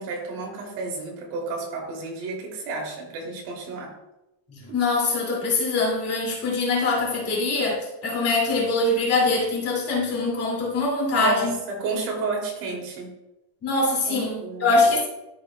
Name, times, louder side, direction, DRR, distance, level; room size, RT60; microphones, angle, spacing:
voice 1, 0.0-3.9 4.7-4.8 11.1-13.1 14.0-14.8, right 3 dB, 80° right, 0 dB, 2.9 m, -31 dB
voice 2, 4.5-11.6 13.6-15.1, left 3 dB, 30° left, -3 dB, 2.4 m, -23 dB
12.5 x 6.6 x 2.2 m, 0.95 s
cardioid pair, 180°, 45 cm